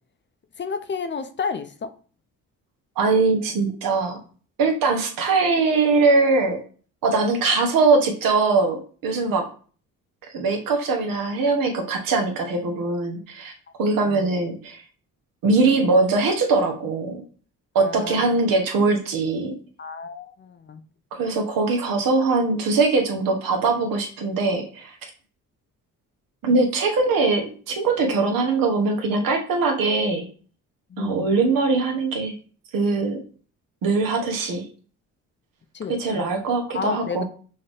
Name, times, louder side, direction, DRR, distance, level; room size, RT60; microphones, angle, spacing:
voice 1, 0.6-1.9 14.1-14.3 17.8-18.3 19.8-20.8 30.9-31.3 35.7-36.3 36.7-37.2, left 5 dB, 35° left, 10 dB, 0.6 m, -31 dB
voice 2, 3.0-4.2 4.6-6.6 7.0-9.5 10.3-13.5 13.8-14.8 15.4-17.2 17.7-19.5 21.1-25.0 26.4-30.2 31.0-32.3 32.7-33.2 33.8-34.7 36.0-37.2, right 3 dB, 80° right, 3 dB, 1.2 m, -21 dB
5.6 x 2.8 x 3.4 m, 0.41 s
cardioid pair, 75°, 34 cm